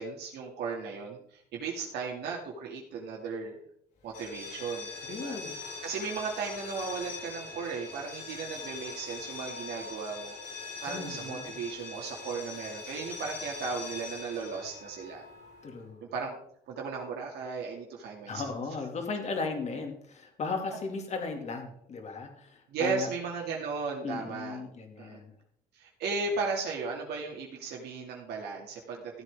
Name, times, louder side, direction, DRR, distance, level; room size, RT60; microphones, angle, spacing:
voice 1, 0.0-3.6 4.0-10.4 10.8-15.2 16.1-16.4 16.7-18.4 22.7-24.6 25.0-25.2 25.7-29.2, right 4 dB, 75° right, -1 dB, 2.5 m, -36 dB
sound 1, 4.1-15.8, left 4 dB, 70° left, 5.1 m, -42 dB
voice 2, 5.0-5.5 10.9-11.5 15.6-16.0 18.3-23.1 24.0-25.3, left 4 dB, 40° left, 4 dB, 2.5 m, -36 dB
14.5 x 8.1 x 3.7 m, 0.70 s
cardioid pair, 110°, 17 cm